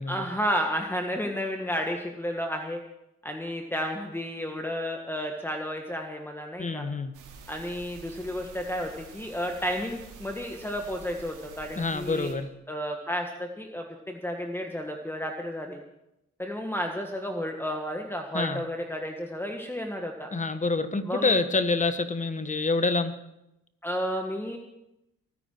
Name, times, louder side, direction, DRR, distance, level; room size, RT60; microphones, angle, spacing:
voice 1, 0.1-2.8 3.2-6.8 7.5-12.3 12.7-15.8 16.4-20.3 21.0-21.3 23.8-24.6, equal, 5° left, 3 dB, 1.6 m, -32 dB
voice 2, 6.6-7.1 11.8-12.5 18.3-18.6 20.3-23.1, left 3 dB, 25° left, 10 dB, 1.4 m, -27 dB
sound 1, 7.1-12.3, right 5 dB, 90° right, 2.9 m, -48 dB
23.5 x 9.8 x 4.6 m, 0.86 s
cardioid pair, 90°, 30 cm